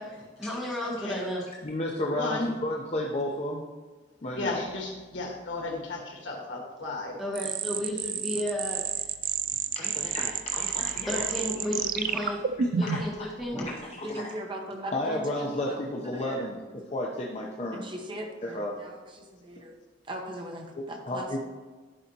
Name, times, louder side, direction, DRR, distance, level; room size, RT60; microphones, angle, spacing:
voice 1, 0.0-1.4 7.2-8.8 11.1-12.4 12.8-13.7, left 1 dB, ahead, -5 dB, 1.8 m, -33 dB
voice 2, 0.8-1.2 2.2-2.5 4.3-7.2, left 2 dB, 90° left, 1 dB, 1.6 m, -34 dB
voice 3, 1.6-3.6 4.2-4.6 9.8-11.2 12.8-13.0 13.7-14.2 14.9-17.9 18.4-18.7 20.8-21.5, left 1 dB, 35° left, -2 dB, 0.7 m, -32 dB
sound 1, 7.4-13.2, right 7 dB, 50° right, 0.3 m, -30 dB
voice 4, 14.0-15.8 16.1-16.5 17.7-19.8 20.1-21.3, right 1 dB, 25° right, 2 dB, 0.8 m, -39 dB
11.0 x 4.9 x 2.9 m, 1.4 s
head